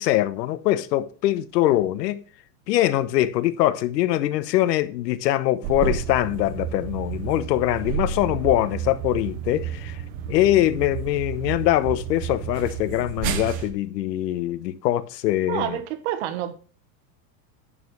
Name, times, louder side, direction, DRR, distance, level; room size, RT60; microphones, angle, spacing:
voice 1, 0.0-2.2 2.7-10.0 10.3-15.8, left 14 dB, 75° left, 1.1 m, -23 dB
sound 1, 5.6-13.7, right 8 dB, 20° right, 0.5 m, -31 dB
voice 2, 15.5-16.5, right 12 dB, 45° right, 1.3 m, -28 dB
11.0 x 8.8 x 3.2 m
supercardioid pair, 175°, 50 cm